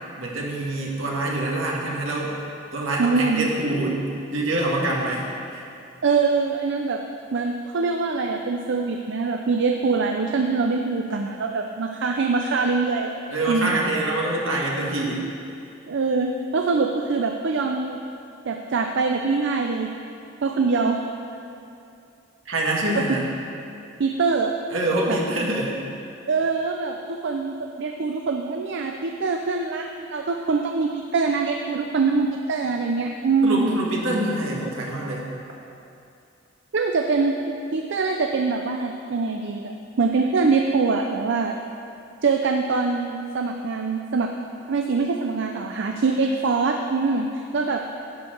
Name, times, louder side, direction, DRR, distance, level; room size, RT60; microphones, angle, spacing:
voice 1, 0.2-2.3 2.7-4.0 4.3-5.6 13.3-15.2 22.5-23.3 24.7-25.7 33.4-35.3, right 1 dB, 80° right, -3 dB, 1.7 m, -25 dB
voice 2, 3.0-3.5 6.0-7.0 7.3-13.1 13.5-13.8 15.9-18.0 18.5-19.9 20.4-21.0 24.0-24.5 25.1-25.2 26.3-33.7 36.7-37.4 37.7-41.6 42.2-44.3 44.7-47.3 47.5-47.8, right 4 dB, 65° right, 3 dB, 0.5 m, -23 dB
11.0 x 4.5 x 7.6 m, 2.6 s
head